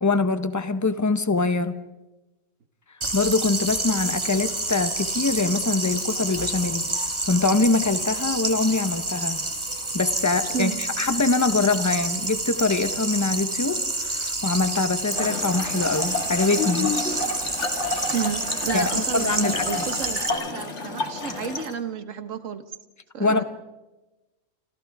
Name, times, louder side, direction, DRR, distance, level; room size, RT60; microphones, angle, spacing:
voice 1, 0.0-1.8 3.1-9.4 9.9-17.1 18.7-19.7 23.2-23.4, left 3 dB, 15° left, 11 dB, 0.7 m, -24 dB
sound 1, 3.0-20.3, right 2 dB, 20° right, 1.6 m, -29 dB
Trickle dribble / Fill (with liquid), 15.1-21.8, left 3 dB, 50° left, 2.2 m, -30 dB
voice 2, 18.1-22.6 23.1-23.4, right 7 dB, 60° right, 10 dB, 1.6 m, -31 dB
27.0 x 27.0 x 3.5 m, 1.1 s
omnidirectional pair, 1.5 m